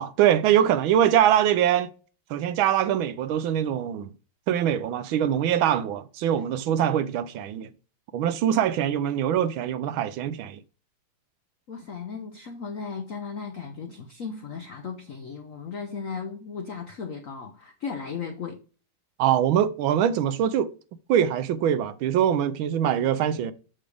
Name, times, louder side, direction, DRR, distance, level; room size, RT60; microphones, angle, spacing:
voice 1, 0.0-1.9 2.3-4.1 4.5-7.7 8.1-10.6 19.2-20.7 21.1-23.5, right 10 dB, 75° right, 1.4 m, -23 dB
voice 2, 11.7-18.6, left 5 dB, 70° left, 0.7 m, -36 dB
7.3 x 6.5 x 3.4 m
omnidirectional pair, 2.4 m